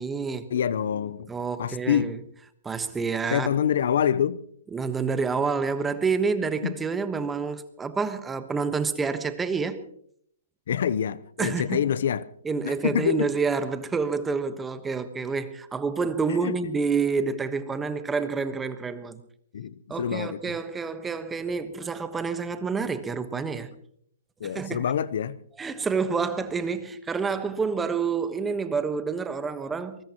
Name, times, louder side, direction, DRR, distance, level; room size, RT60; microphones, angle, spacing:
voice 1, 0.0-0.4 1.3-2.2 2.6-3.5 4.7-9.8 11.4-11.8 12.4-19.2 19.9-23.7 24.5-24.8 25.6-30.0, right 5 dB, 10° right, 1.2 m, -28 dB
voice 2, 0.5-1.3 1.6-2.1 3.3-4.4 6.6-6.8 10.7-12.2 12.6-13.3 16.3-16.5 19.5-20.5 24.4-25.4, left 8 dB, 65° left, 0.7 m, -26 dB
23.0 x 20.0 x 3.0 m
hypercardioid pair, 145°, 0 cm